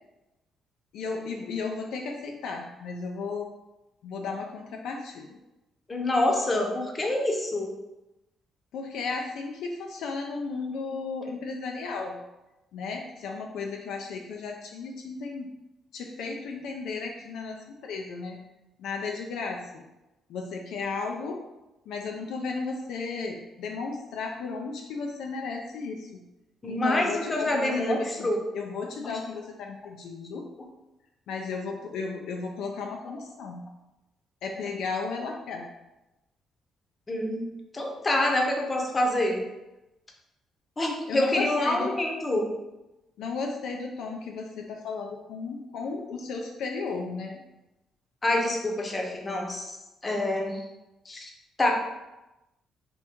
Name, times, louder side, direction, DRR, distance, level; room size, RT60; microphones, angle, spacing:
voice 1, 0.9-3.5 4.0-5.4 8.7-12.2 12.7-15.5 15.9-18.4 18.8-19.8 20.3-21.4 21.9-26.2 26.7-30.4 31.3-33.7 34.4-35.7 41.1-41.9 43.2-47.4, left 4 dB, 80° left, 1 dB, 0.3 m, -34 dB
voice 2, 5.9-7.7 26.6-28.4 37.1-37.5 37.7-39.4 40.8-42.5 48.2-50.6 51.1-51.3 51.6-51.7, left 1 dB, 30° left, 1 dB, 0.7 m, -26 dB
2.8 x 2.6 x 3.5 m, 0.99 s
cardioid pair, 75°, 0 cm